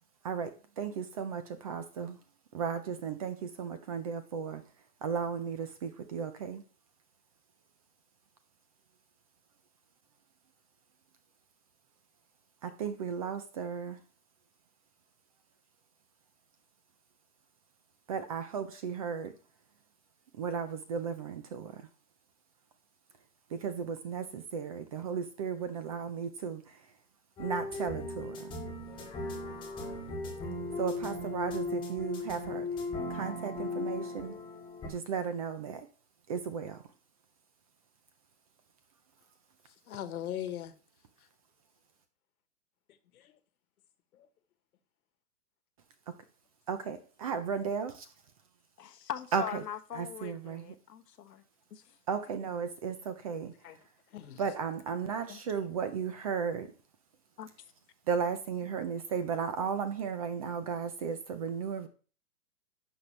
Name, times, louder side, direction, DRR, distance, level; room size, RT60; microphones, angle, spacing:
voice 1, 0.2-2.2 2.5-4.6 5.0-6.6 12.6-14.0 18.1-19.3 20.3-21.9 23.5-26.8 27.4-28.6 30.8-32.6 33.1-34.3 34.9-35.9 36.3-36.8 46.1-46.2 46.7-48.1 49.3-49.6 49.9-50.7 52.1-53.5 54.4-56.7 58.1-61.9, right 6 dB, 25° right, 0.5 m, -35 dB
sound 1, 27.4-34.9, left 2 dB, 10° left, 1.5 m, -37 dB
voice 2, 39.6-40.7 41.2-41.3 42.9-43.4 44.1-44.3 53.6-53.8 54.1-54.4 55.3-55.4, left 11 dB, 65° left, 1.4 m, -41 dB
voice 3, 48.8-51.4 51.7-51.9 57.4-57.5, left 10 dB, 90° left, 1.2 m, -41 dB
11.0 x 6.2 x 3.2 m
hypercardioid pair, 145°, 47 cm